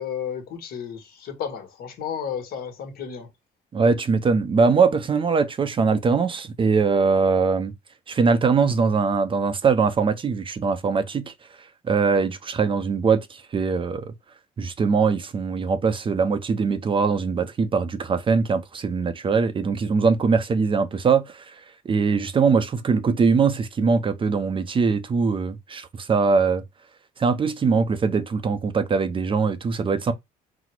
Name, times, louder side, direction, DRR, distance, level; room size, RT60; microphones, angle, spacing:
voice 1, 0.0-3.3, left 8 dB, 65° left, 1.4 m, -32 dB
voice 2, 3.7-7.7 8.1-11.3 11.9-14.1 14.6-21.4 21.8-26.6 27.2-30.1, right 5 dB, 30° right, 0.6 m, -22 dB
4.1 x 2.1 x 4.4 m
cardioid pair, 110°, 17 cm